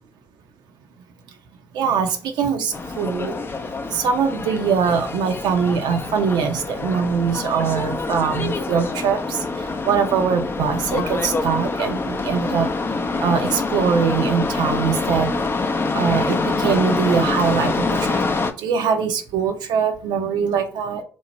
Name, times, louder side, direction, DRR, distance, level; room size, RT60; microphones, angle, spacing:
voice 1, 1.7-3.4 3.9-9.4 9.8-12.7 13.2-15.3 15.9-18.2 18.6-21.0, right 6 dB, 60° right, 5 dB, 0.5 m, -22 dB
sound 1, 2.7-18.5, left 3 dB, 25° left, 0.5 m, -25 dB
3.0 x 2.1 x 4.0 m, 0.41 s
hypercardioid pair, 50°, 8 cm